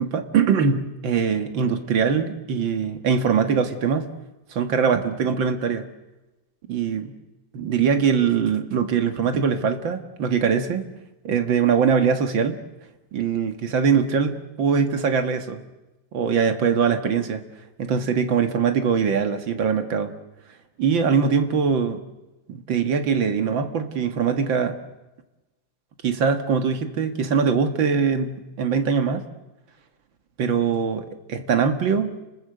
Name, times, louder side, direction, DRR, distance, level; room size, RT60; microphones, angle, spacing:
voice 1, 0.0-4.1 4.5-5.8 6.7-7.1 7.5-10.9 11.2-12.6 13.1-15.6 16.1-17.4 17.8-20.1 20.8-22.0 22.5-24.8 26.0-29.2 30.4-32.1, right 6 dB, 85° right, 7 dB, 2.3 m, -22 dB
29.0 x 20.0 x 7.9 m, 1.1 s
omnidirectional pair, 2.0 m